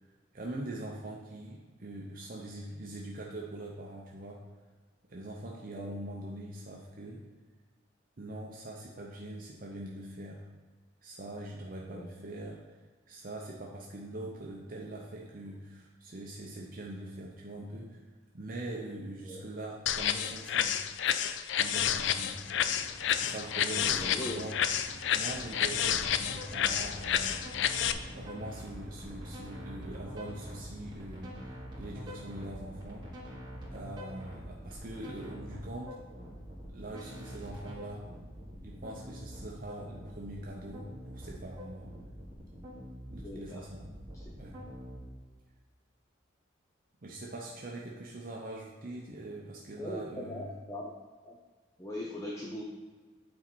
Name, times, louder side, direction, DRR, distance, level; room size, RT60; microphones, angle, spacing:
voice 1, 0.0-4.4 5.1-7.3 8.2-10.4 11.0-18.0 18.3-20.8 21.6-22.4 23.1-24.6 25.1-27.5 28.1-33.2 33.7-36.0 36.7-38.1 38.6-41.9 43.1-43.8 44.4-44.6 47.0-50.5, right 1 dB, 45° right, -2 dB, 0.7 m, -43 dB
sound 1, 19.9-27.9, left 9 dB, 65° left, 0.4 m, -30 dB
sound 2, 21.5-33.7, equal, 5° right, 2.3 m, -51 dB
voice 2, 23.7-24.4 43.2-43.6 49.8-50.9 51.2-51.4 51.8-52.6, left 1 dB, 15° left, -2 dB, 0.6 m, -40 dB
sound 3, 25.3-45.0, equal, 25° right, 1.8 m, -46 dB
8.6 x 4.2 x 4.4 m, 1.4 s
head